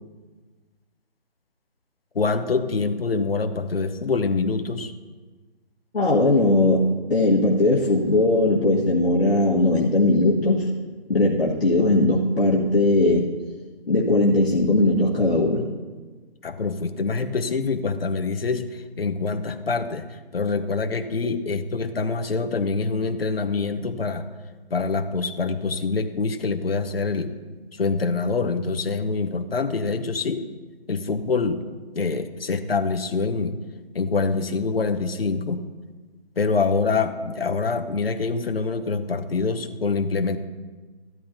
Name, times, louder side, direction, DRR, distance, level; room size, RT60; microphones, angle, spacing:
voice 1, 2.1-4.9 16.4-20.1 20.3-24.3 24.7-27.3 27.7-30.4 30.9-31.6 31.9-33.5 33.9-35.6 36.4-40.4, left 4 dB, 70° left, 8 dB, 1.0 m, -25 dB
voice 2, 5.9-10.7 11.1-13.3 13.9-15.7, left 2 dB, 85° left, -5 dB, 1.7 m, -19 dB
14.5 x 12.5 x 2.8 m, 1.4 s
figure-of-eight pair, 165°, 31 cm